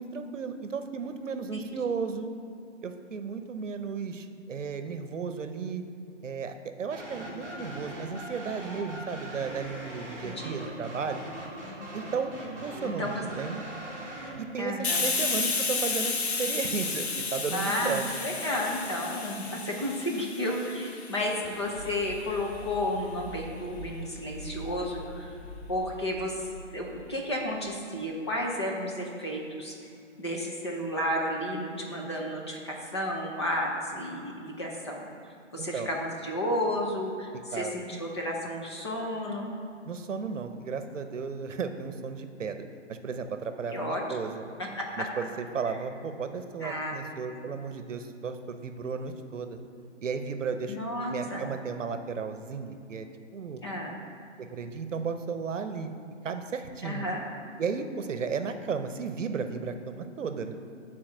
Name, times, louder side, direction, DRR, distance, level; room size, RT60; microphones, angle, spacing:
voice 1, 0.0-2.3 2.8-5.8 6.2-11.2 11.9-12.3 12.6-13.6 14.4-18.0 35.6-35.9 37.5-37.8 39.9-44.5 45.0-49.6 50.0-50.8 51.1-53.1 53.3-53.6 54.4-55.9 56.2-57.1 57.6-60.5, right 5 dB, 75° right, 8 dB, 0.8 m, -34 dB
sound 1, 6.9-14.5, right 1 dB, 5° left, 1.3 m, -41 dB
voice 2, 10.2-10.7 12.8-13.2 14.6-15.1 17.5-25.3 25.7-29.7 30.2-35.1 35.5-39.5 43.7-44.0 44.8-45.1 46.6-47.4 50.7-51.5 53.6-54.0 56.8-57.2, left 1 dB, 20° left, -2 dB, 0.7 m, -32 dB
Hiss, 14.8-22.2, left 4 dB, 55° left, 1.0 m, -32 dB
sound 2, 19.5-27.6, right 1 dB, 20° right, 1.4 m, -45 dB
8.9 x 4.2 x 6.1 m, 2.5 s
hypercardioid pair, 165°, 37 cm